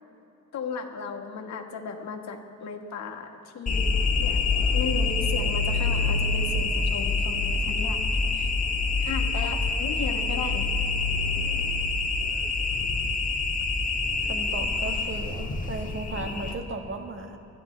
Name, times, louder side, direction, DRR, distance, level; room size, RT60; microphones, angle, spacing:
voice 1, 0.5-3.9 4.2-4.4 4.7-8.0 8.3-8.5 9.0-10.7, left 5 dB, 65° left, 3 dB, 1.6 m, -35 dB
sound 1, 3.7-16.5, left 3 dB, 25° left, 1.6 m, -26 dB
voice 2, 14.2-17.4, right 2 dB, 40° right, 4 dB, 1.6 m, -36 dB
26.5 x 10.5 x 3.3 m, 2.8 s
cardioid pair, 90°, 30 cm